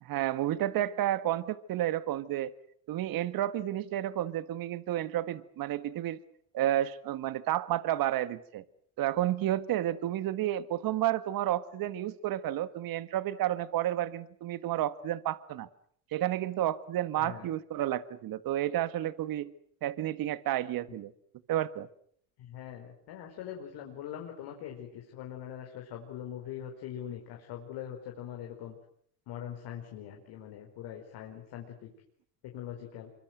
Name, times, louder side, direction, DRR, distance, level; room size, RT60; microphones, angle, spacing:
voice 1, 0.0-2.5 2.9-6.2 6.5-8.6 9.0-15.7 16.1-19.5 19.8-21.1 21.5-21.9, right 13 dB, 55° right, 1.6 m, -31 dB
voice 2, 22.5-24.9 25.1-28.7 29.3-31.6 32.5-33.1, left 10 dB, 65° left, 4.9 m, -42 dB
25.0 x 24.5 x 7.9 m
supercardioid pair, 95°, 42 cm